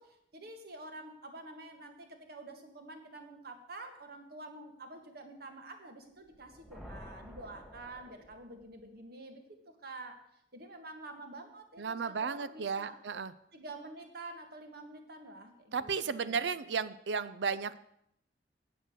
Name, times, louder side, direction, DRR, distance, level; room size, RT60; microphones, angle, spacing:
voice 1, 0.0-10.2 10.5-13.0 13.5-16.6, right 2 dB, 60° right, 5 dB, 1.6 m, -48 dB
sound 1, 6.3-8.9, equal, 5° right, 2.0 m, -51 dB
voice 2, 11.8-13.3 15.7-17.8, right 5 dB, 80° right, 15 dB, 0.6 m, -34 dB
8.9 x 8.0 x 6.4 m, 0.74 s
head